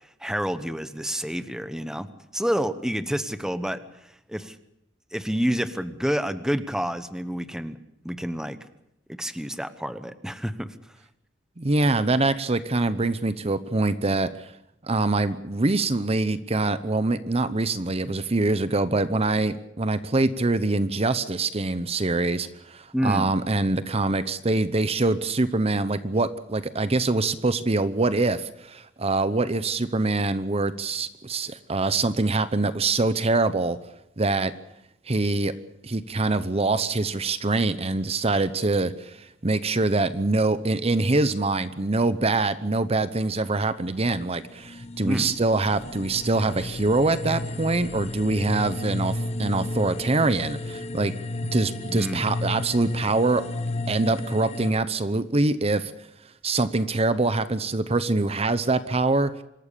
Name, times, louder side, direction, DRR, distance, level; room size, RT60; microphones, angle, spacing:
voice 1, 0.2-4.6 5.1-7.8 8.0-8.6 9.1-10.7 22.9-23.3 45.0-45.3 51.9-52.3, equal, 5° right, 12 dB, 1.0 m, -29 dB
voice 2, 11.6-14.5 14.9-33.8 34.2-34.5 35.1-35.5 35.8-51.1 51.5-53.4 53.9-55.9 56.4-59.3, right 2 dB, 30° right, 13 dB, 0.8 m, -24 dB
sound 1, 44.2-54.7, left 2 dB, 35° left, 1.1 m, -33 dB
26.0 x 13.5 x 8.4 m, 0.80 s
head